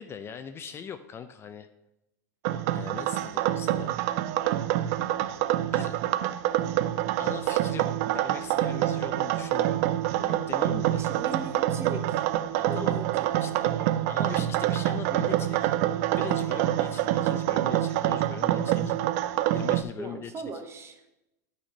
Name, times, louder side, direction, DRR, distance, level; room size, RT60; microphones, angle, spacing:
voice 1, 0.0-1.7 2.7-4.0 5.7-5.9 7.2-11.0 12.5-13.0 13.4-15.6 16.1-19.0 19.5-20.3, left 7 dB, 25° left, 9 dB, 0.5 m, -41 dB
sound 1, 2.4-19.8, right 13 dB, 60° right, 0.4 m, -26 dB
voice 2, 10.9-12.2 12.6-13.7 20.0-21.0, right 3 dB, 25° right, 7 dB, 1.1 m, -39 dB
8.8 x 4.2 x 5.4 m, 0.89 s
hypercardioid pair, 110°, 9 cm